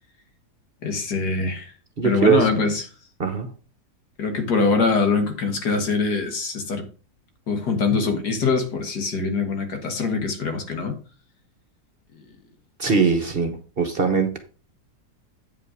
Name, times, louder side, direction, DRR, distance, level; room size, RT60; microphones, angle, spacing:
voice 1, 0.8-1.7 2.0-2.8 4.2-6.9 7.5-11.0, left 4 dB, 80° left, 2.2 m, -23 dB
voice 2, 2.0-2.5 3.2-3.5 12.8-14.4, right 5 dB, 40° right, 1.0 m, -21 dB
8.7 x 5.5 x 4.9 m
omnidirectional pair, 1.7 m